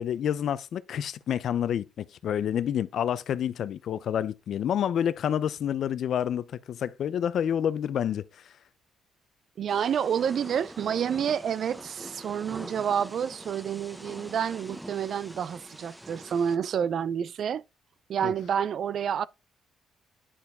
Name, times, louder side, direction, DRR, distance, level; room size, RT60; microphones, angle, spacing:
voice 1, 0.0-8.3 18.2-18.3, left 9 dB, 65° left, 0.6 m, -28 dB
voice 2, 9.6-17.6 18.1-19.3, right 8 dB, 60° right, 0.4 m, -29 dB
Thunder / Rain, 9.7-16.6, right 1 dB, 10° right, 1.0 m, -44 dB
10.0 x 4.6 x 3.6 m
cardioid pair, 90°, 0 cm